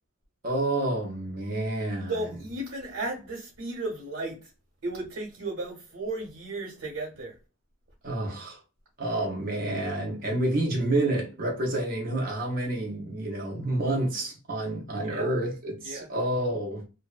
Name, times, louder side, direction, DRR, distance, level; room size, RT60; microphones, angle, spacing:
voice 1, 0.4-2.2 8.0-8.6 9.0-16.8, right 1 dB, 40° right, 0.5 m, -29 dB
voice 2, 2.1-4.5 4.8-7.4 15.0-15.3 15.8-16.1, right 2 dB, 85° right, 0.9 m, -34 dB
2.6 x 2.0 x 2.3 m
head